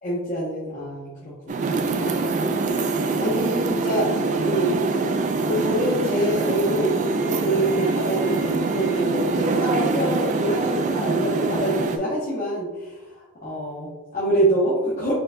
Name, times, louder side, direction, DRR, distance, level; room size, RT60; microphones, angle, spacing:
voice 1, 0.0-2.4 3.2-4.1 4.4-4.8 5.4-12.9 13.4-15.1, right 1 dB, 40° left, -7 dB, 1.1 m, -25 dB
sound 1, 1.5-12.0, right 3 dB, 35° right, 0.3 m, -24 dB
4.3 x 4.1 x 2.5 m, 1.2 s
head